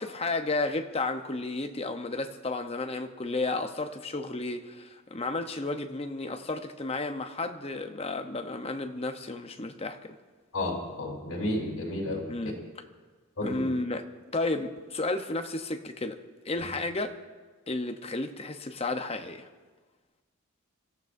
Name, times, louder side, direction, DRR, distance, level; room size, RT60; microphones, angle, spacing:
voice 1, 0.0-10.2 12.3-12.6 13.4-14.0 14.3-16.2 16.4-17.1 17.7-19.5, left 2 dB, 30° left, 0.8 m, -32 dB
voice 2, 10.5-12.3 13.4-13.6, left 1 dB, 75° left, 4.2 m, -31 dB
27.0 x 14.5 x 2.6 m
head